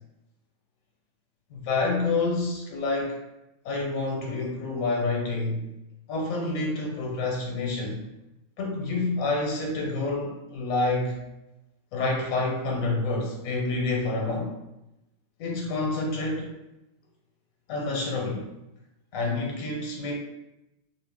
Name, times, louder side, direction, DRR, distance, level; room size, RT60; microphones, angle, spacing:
voice 1, 1.5-3.2 3.6-5.6 6.1-8.1 8.6-11.2 11.9-14.5 15.4-16.5 17.7-18.5 19.1-20.1, left 3 dB, 80° left, -1 dB, 1.0 m, -28 dB
2.6 x 2.0 x 3.3 m, 0.91 s
omnidirectional pair, 1.4 m